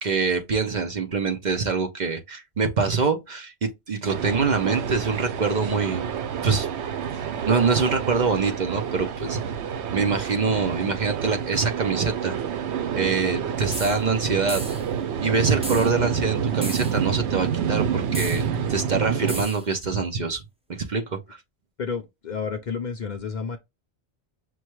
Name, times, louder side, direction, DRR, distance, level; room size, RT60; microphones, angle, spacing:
voice 1, 0.0-6.1 6.4-6.7 7.5-9.4 9.9-12.4 13.0-14.6 15.2-20.4 20.7-21.4, right 4 dB, 50° right, 0.7 m, -25 dB
sound 1, 4.1-19.4, right 8 dB, 85° right, 0.9 m, -28 dB
sound 2, 13.7-14.0 14.5-14.9 15.6-15.9 16.6-17.0 18.1-18.4 19.3-19.6, right 1 dB, 10° right, 0.4 m, -34 dB
voice 2, 21.8-23.6, left 5 dB, 50° left, 0.6 m, -30 dB
6.0 x 2.2 x 3.0 m
omnidirectional pair, 1.1 m